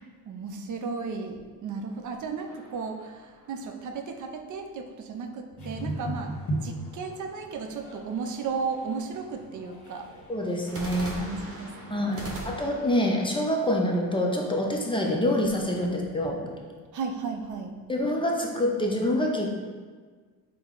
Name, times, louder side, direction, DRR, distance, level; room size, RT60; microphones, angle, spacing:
voice 1, 0.3-6.4 6.6-10.1 11.1-12.6 16.9-17.7, right 5 dB, 50° right, 5 dB, 0.5 m, -35 dB
sound 1, 2.5-3.9 10.7-14.6, right 1 dB, 35° right, 0.9 m, -41 dB
sound 2, 5.6-12.1, right 1 dB, 50° left, 1.3 m, -38 dB
voice 2, 10.3-11.1 11.9-16.4 17.9-19.5, left 1 dB, 15° left, 0 dB, 0.5 m, -26 dB
4.3 x 2.2 x 3.8 m, 1.5 s
cardioid pair, 85°, 39 cm